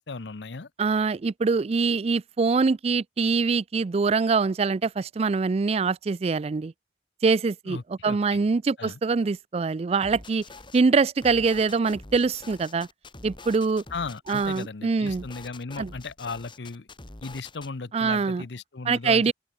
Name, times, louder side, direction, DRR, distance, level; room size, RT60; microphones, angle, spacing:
voice 1, 0.1-0.7 7.7-8.4 8.8-9.0 13.9-16.9 17.2-19.3, left 4 dB, 80° left, 0.8 m, -36 dB
voice 2, 0.8-6.7 7.2-10.4 10.7-12.9 13.2-13.8 14.3-15.2 15.8-15.9 17.9-18.4 18.9-19.3, right 4 dB, 35° right, 0.4 m, -24 dB
sound 1, 10.0-10.8 11.2-14.7 15.0-17.7, left 2 dB, 30° left, 3.4 m, -45 dB
open air
head